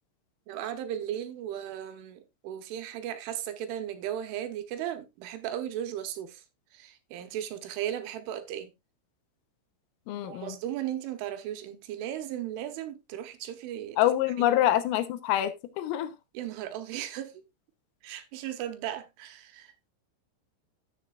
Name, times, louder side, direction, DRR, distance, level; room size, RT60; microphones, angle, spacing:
voice 1, 0.5-6.4 6.7-8.7 10.2-14.0 14.3-14.6 16.3-17.3 18.0-19.7, right 11 dB, 75° right, 3.3 m, -36 dB
voice 2, 10.1-10.5 14.0-16.1, left 13 dB, 85° left, 3.5 m, -26 dB
14.5 x 7.2 x 2.4 m
omnidirectional pair, 5.9 m